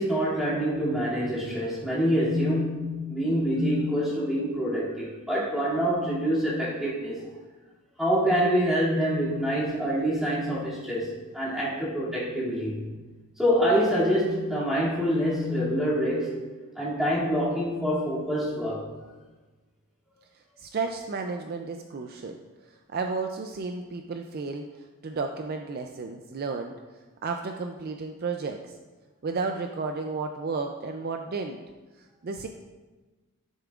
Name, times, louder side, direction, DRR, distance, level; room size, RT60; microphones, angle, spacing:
voice 1, 0.0-7.2 8.0-12.9 13.4-16.3 16.8-18.9, equal, ahead, -8 dB, 2.5 m, -26 dB
voice 2, 20.3-22.4 22.7-26.7 27.2-28.8 29.2-31.6 32.0-32.5, right 4 dB, 45° right, 4 dB, 0.4 m, -33 dB
13.0 x 6.8 x 2.4 m, 1.3 s
head